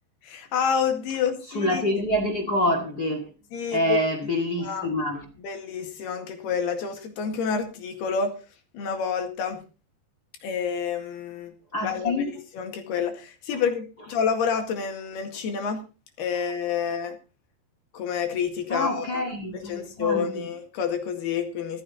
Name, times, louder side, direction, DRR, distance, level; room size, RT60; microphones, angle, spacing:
voice 1, 0.2-2.0 3.5-4.0 4.6-4.9 5.4-8.3 8.7-9.6 10.4-11.5 11.8-15.8 16.2-17.2 17.9-19.2 19.5-21.8, left 6 dB, 65° left, 3.8 m, -28 dB
voice 2, 1.5-3.2 3.7-5.2 11.7-12.3 18.7-20.5, left 1 dB, 35° left, 1.7 m, -26 dB
15.0 x 13.0 x 4.2 m
omnidirectional pair, 5.2 m